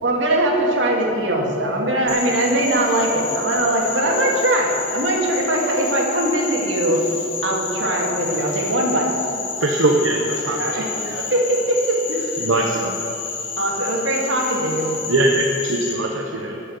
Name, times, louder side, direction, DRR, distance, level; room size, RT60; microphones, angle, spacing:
voice 1, 0.0-7.0 7.4-9.1 10.6-10.9 11.3-12.7 13.6-14.9, right 1 dB, 70° right, -1 dB, 2.2 m, -21 dB
Frog, 2.1-15.9, left 5 dB, 70° left, 2.0 m, -30 dB
voice 2, 9.6-10.6 11.0-11.2 12.4-12.9 15.1-16.6, right 2 dB, 85° right, 1 dB, 0.9 m, -21 dB
12.0 x 7.6 x 8.1 m, 3.0 s
head